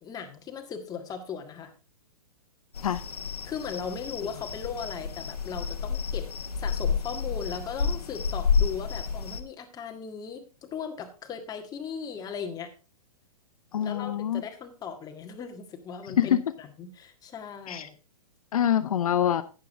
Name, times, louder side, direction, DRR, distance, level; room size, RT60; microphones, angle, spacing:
voice 1, 0.0-1.7 3.4-6.3 6.6-12.7 13.8-18.0, left 6 dB, 20° left, 5 dB, 1.7 m, -38 dB
sound 1, 2.7-9.4, left 6 dB, 85° left, 1.5 m, -30 dB
voice 2, 13.7-14.4 16.1-16.4 17.7-17.9 18.5-19.4, left 10 dB, 70° left, 10 dB, 0.8 m, -25 dB
11.5 x 9.2 x 3.6 m, 0.33 s
hypercardioid pair, 125°, 19 cm